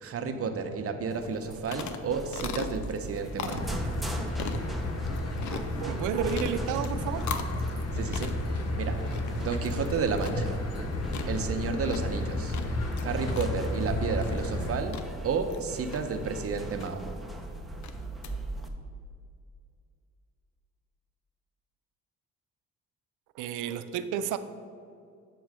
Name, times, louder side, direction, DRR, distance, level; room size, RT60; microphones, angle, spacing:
voice 1, 0.0-3.7 7.9-8.3 8.8-9.0 9.4-10.6 11.3-12.6 13.0-15.0 15.2-17.0, right 5 dB, 50° right, 7 dB, 0.7 m, -31 dB
sound 1, 1.1-18.7, right 1 dB, ahead, 0.6 m, -41 dB
sound 2, 1.2-18.3, left 7 dB, 75° left, 0.6 m, -42 dB
sound 3, 3.5-14.8, left 1 dB, 55° left, 0.9 m, -32 dB
voice 2, 5.5-7.3 23.4-24.4, right 8 dB, 90° right, 11 dB, 0.5 m, -32 dB
8.2 x 3.1 x 6.1 m, 2.3 s
cardioid pair, 90°, 30 cm